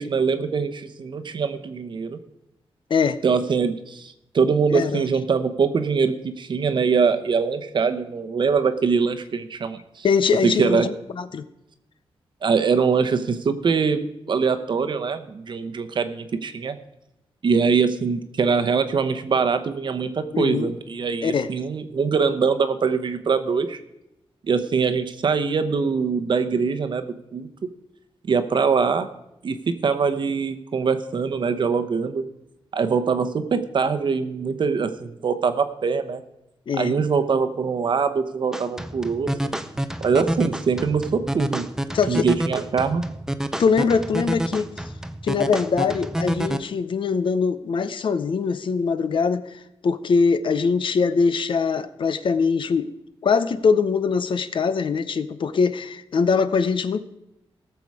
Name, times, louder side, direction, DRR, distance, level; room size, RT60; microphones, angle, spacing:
voice 1, 0.0-2.2 3.2-10.1 10.4-10.9 12.4-14.0 14.3-16.8 17.4-23.8 24.5-27.5 28.3-29.1 29.4-32.2 32.7-36.2 36.8-39.3 40.0-41.7 42.1-43.0, right 5 dB, 55° right, 9 dB, 0.9 m, -23 dB
voice 2, 4.7-5.1 10.0-11.5 20.3-20.7 21.2-21.5 36.7-36.9 41.9-42.3 43.6-44.7 45.2-52.9 53.2-57.0, left 5 dB, 55° left, 13 dB, 0.7 m, -22 dB
sound 1, 38.5-46.6, right 1 dB, 5° right, 0.6 m, -28 dB
17.5 x 7.0 x 4.8 m, 0.85 s
wide cardioid pair, 145°, 10 cm